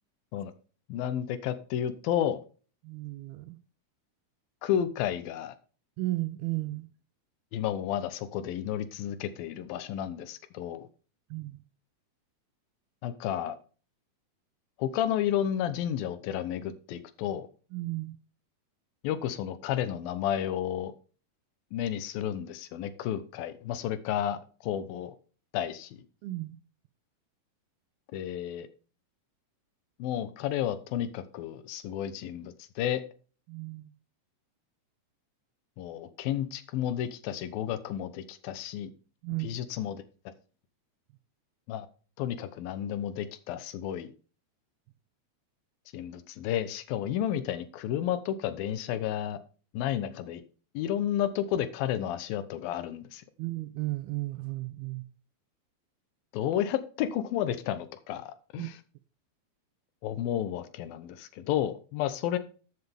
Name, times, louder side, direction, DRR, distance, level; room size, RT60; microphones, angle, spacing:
voice 1, 0.9-2.4 4.6-5.5 7.5-10.9 13.0-13.6 14.8-17.5 19.0-20.9 21.7-25.1 25.5-26.0 28.1-28.7 30.0-33.0 35.8-38.9 39.4-40.0 41.7-41.9 42.2-44.1 45.9-49.4 49.7-50.4 50.7-53.2 56.3-58.8 60.0-62.4, left 10 dB, 75° left, 2.5 m, -32 dB
voice 2, 2.8-3.6 6.0-6.9 11.3-11.6 17.7-18.2 26.2-26.6 33.5-33.9 39.2-39.6 53.4-55.0 58.6-58.7, right 19 dB, 80° right, 2.5 m, -34 dB
13.0 x 8.1 x 3.5 m
omnidirectional pair, 4.5 m